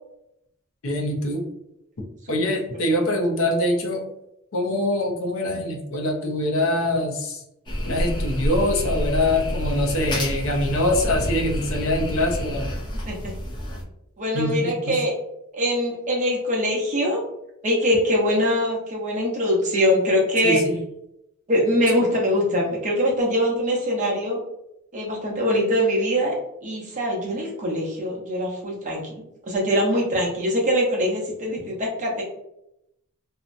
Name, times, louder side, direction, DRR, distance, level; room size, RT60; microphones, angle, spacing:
voice 1, 0.8-1.4 2.3-4.0 4.5-7.4 7.8-12.7 14.3-15.0 20.4-20.8, left 1 dB, 65° left, 0 dB, 0.6 m, -24 dB
sound 1, 7.7-13.8, equal, 20° left, 0.4 m, -28 dB
voice 2, 14.2-15.1 15.5-17.2 17.6-20.6 21.5-24.4 24.9-26.3 26.6-29.0 29.5-32.2, equal, 35° right, -2 dB, 0.7 m, -23 dB
2.7 x 2.1 x 2.5 m, 0.82 s
head